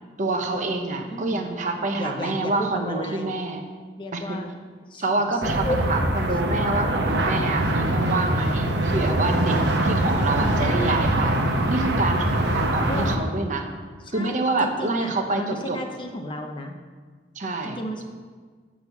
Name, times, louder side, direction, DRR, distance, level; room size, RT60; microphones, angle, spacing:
voice 1, 0.2-3.6 4.1-4.4 5.0-13.7 14.1-15.8 17.3-17.8, right 2 dB, 45° right, 4 dB, 0.9 m, -27 dB
voice 2, 1.1-1.5 1.9-3.3 4.0-4.5 4.9-7.0 10.4-10.6 12.9-13.2 14.0-16.8 17.6-18.0, equal, 25° left, 4 dB, 0.7 m, -33 dB
sound 1, 5.4-13.2, right 1 dB, 65° right, 1.0 m, -23 dB
7.4 x 6.3 x 7.1 m, 1.5 s
head